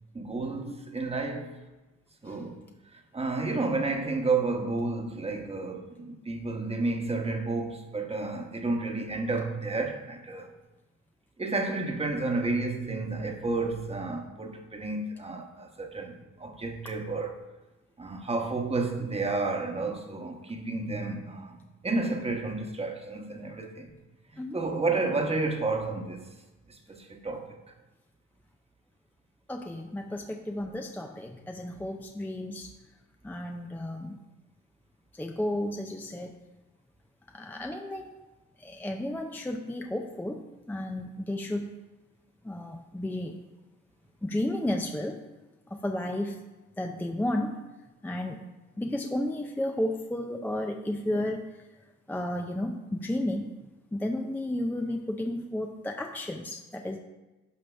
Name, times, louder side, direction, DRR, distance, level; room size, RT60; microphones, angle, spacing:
voice 1, 0.1-1.6 2.2-2.6 3.1-10.5 11.4-17.3 18.0-21.6 21.8-23.9 24.5-26.2 26.7-27.5, right 3 dB, 20° right, 1.1 m, -31 dB
voice 2, 29.5-32.7 33.2-34.2 35.2-36.3 37.3-38.1 38.6-40.4 40.7-41.7 42.4-43.4 44.2-45.2 45.7-46.4 46.8-47.6 48.0-48.4 48.8-51.4 52.1-53.5 53.9-57.0, left 1 dB, 5° left, 0.5 m, -32 dB
11.5 x 5.0 x 3.4 m
cardioid pair, 90°, 30 cm